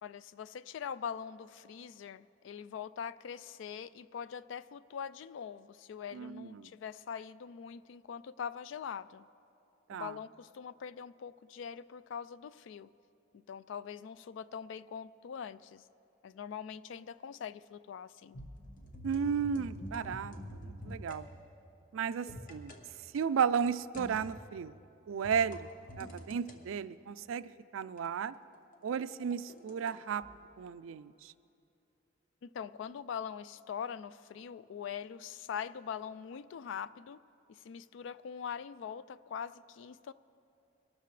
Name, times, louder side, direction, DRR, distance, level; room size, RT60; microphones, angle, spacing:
voice 1, 0.0-9.3 9.9-12.9 13.3-15.8 16.2-18.4 32.4-37.2 37.5-40.1, left 7 dB, 70° left, 17 dB, 0.3 m, -43 dB
voice 2, 6.1-6.7 9.9-10.2 19.0-20.3 20.6-21.3 21.9-22.7 23.1-24.7 25.1-25.7 26.0-28.3 28.8-30.2 30.6-31.3, right 7 dB, 85° right, 15 dB, 0.4 m, -34 dB
sound 1, 18.3-21.2 22.3-22.8 23.9-24.4 25.2-26.5 28.0-29.9 30.2-30.3, equal, 40° left, 1.1 m, -46 dB
22.5 x 12.5 x 3.2 m, 2.7 s
head